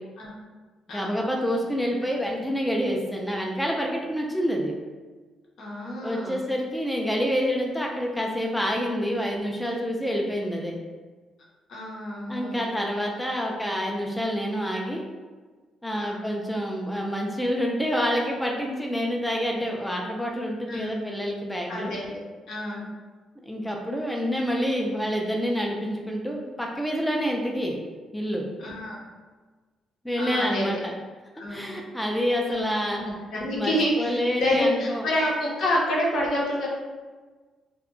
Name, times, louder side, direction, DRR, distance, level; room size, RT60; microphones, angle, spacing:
voice 1, 0.9-4.7 6.0-10.8 12.3-15.0 15.8-21.9 23.4-27.8 28.1-28.5 30.0-30.9 31.5-33.0 33.5-35.1, equal, 5° left, -1 dB, 0.3 m, -27 dB
voice 2, 5.6-6.4 11.7-12.7 16.0-16.2 20.7-21.0 21.7-22.2 22.5-22.9 28.6-29.0 30.2-30.8 31.4-31.7 32.4-32.6 32.9-36.7, left 1 dB, 65° left, -3 dB, 0.7 m, -28 dB
2.7 x 2.1 x 2.5 m, 1.4 s
cardioid pair, 90°, 0 cm